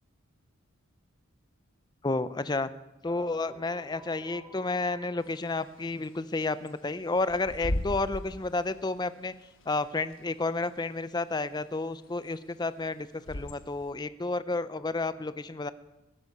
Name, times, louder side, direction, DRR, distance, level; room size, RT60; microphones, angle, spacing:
voice 1, 2.0-2.7 3.0-9.3 9.7-15.7, left 3 dB, 20° left, 14 dB, 0.5 m, -31 dB
sound 1, 3.0-5.9, left 1 dB, 10° right, 1.8 m, -51 dB
Bird / Wind, 5.2-13.9, left 1 dB, 65° left, 1.4 m, -40 dB
19.5 x 9.7 x 5.4 m, 0.99 s
head